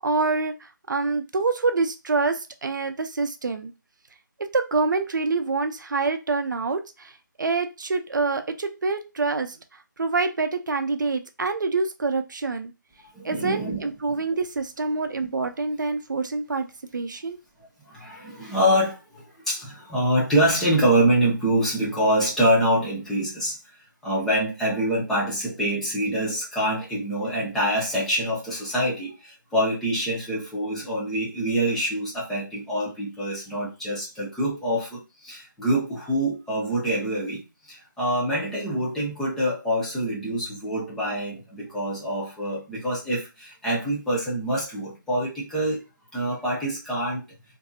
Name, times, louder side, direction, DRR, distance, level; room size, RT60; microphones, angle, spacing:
voice 1, 0.0-3.7 4.4-7.1 7.4-9.6 10.0-12.7 13.2-16.7 16.9-17.4, right 3 dB, 65° right, 8 dB, 0.5 m, -26 dB
voice 2, 13.1-13.8 14.1-14.2 17.9-23.6 24.0-45.8 46.1-47.2, right 1 dB, 5° left, -7 dB, 0.7 m, -25 dB
2.6 x 2.6 x 2.3 m, 0.27 s
figure-of-eight pair, 155°, 11 cm